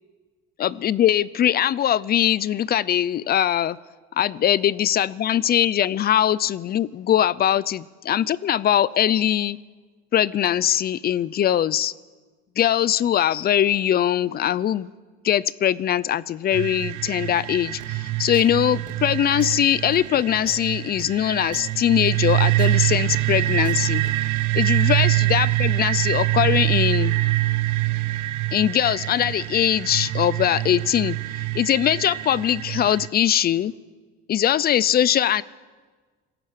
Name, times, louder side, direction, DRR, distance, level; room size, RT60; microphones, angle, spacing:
voice 1, 0.6-3.8 4.2-9.6 10.1-11.9 12.6-14.9 15.2-24.0 24.5-27.2 28.5-31.2 31.5-33.7 34.3-35.4, left 10 dB, 35° left, 20 dB, 0.5 m, -21 dB
sound 1, 16.5-33.1, right 18 dB, 75° right, 1.2 m, -24 dB
sound 2, 17.8-24.1, right 5 dB, 25° right, 3.3 m, -46 dB
27.0 x 17.0 x 6.7 m, 1.4 s
cardioid pair, 145°, 29 cm